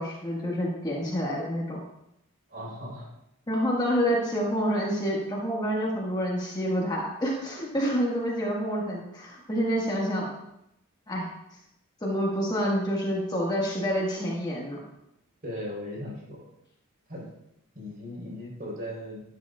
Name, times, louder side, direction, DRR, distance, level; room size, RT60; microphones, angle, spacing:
voice 1, 0.0-1.8 3.5-10.3 11.1-11.3 12.0-14.8, equal, 20° left, -3 dB, 1.6 m, -28 dB
voice 2, 2.5-3.1 15.4-16.5 17.1-17.3 17.7-19.2, left 1 dB, 45° right, -3 dB, 3.9 m, -37 dB
11.5 x 11.0 x 2.4 m, 0.81 s
head